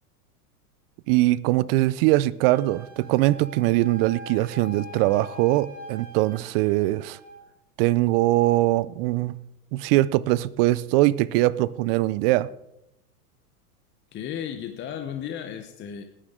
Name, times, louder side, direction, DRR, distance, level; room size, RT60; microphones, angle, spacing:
voice 1, 1.1-7.2 7.8-9.4 9.7-12.5, right 17 dB, 40° right, 0.4 m, -22 dB
Wind instrument woodwind instrument, 2.4-7.4, left 1 dB, 20° right, 4.1 m, -43 dB
voice 2, 14.1-16.0, left 9 dB, 25° left, 0.8 m, -34 dB
19.0 x 10.0 x 3.7 m
supercardioid pair, 130°, 46 cm